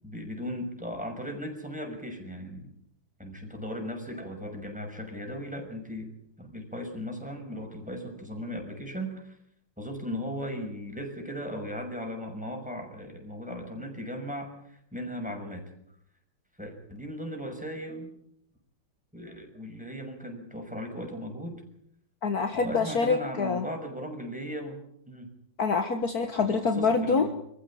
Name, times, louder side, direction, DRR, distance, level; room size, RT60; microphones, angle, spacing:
voice 1, 0.0-2.7 3.2-6.1 6.4-9.4 9.8-15.7 16.6-18.1 19.1-21.6 22.5-24.8 25.1-25.3 26.4-27.3, equal, 5° right, 2 dB, 6.0 m, -37 dB
voice 2, 22.2-23.7 25.6-27.3, left 4 dB, 50° left, 6 dB, 1.9 m, -26 dB
26.5 x 15.0 x 8.6 m, 0.73 s
omnidirectional pair, 2.1 m